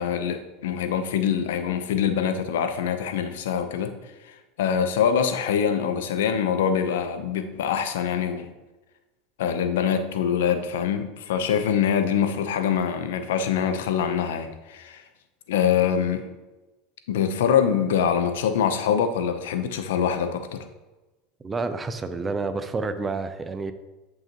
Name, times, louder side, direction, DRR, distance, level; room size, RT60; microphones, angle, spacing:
voice 1, 0.0-3.9 4.2-8.5 9.4-15.0 15.5-16.3 17.1-20.6, left 8 dB, 85° left, 8 dB, 0.8 m, -24 dB
voice 2, 21.4-23.7, right 3 dB, 20° right, 10 dB, 0.6 m, -29 dB
10.0 x 5.8 x 3.0 m, 1.1 s
supercardioid pair, 120°, 0 cm